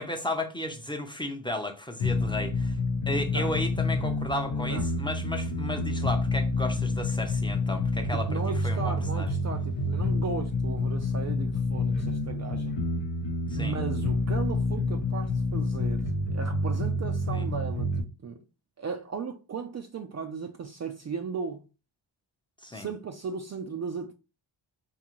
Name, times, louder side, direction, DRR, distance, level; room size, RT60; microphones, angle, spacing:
voice 1, 0.0-2.8 3.1-9.3 13.5-13.8 17.3-17.5 22.6-22.9, left 1 dB, 10° left, 0.6 m, -34 dB
sound 1, 2.0-18.0, left 2 dB, 70° left, 0.8 m, -28 dB
voice 2, 4.5-4.9 8.1-12.8 13.6-18.4 18.8-21.6 22.7-24.1, right 5 dB, 40° right, 0.4 m, -36 dB
3.7 x 2.7 x 3.0 m
cardioid pair, 80°, 46 cm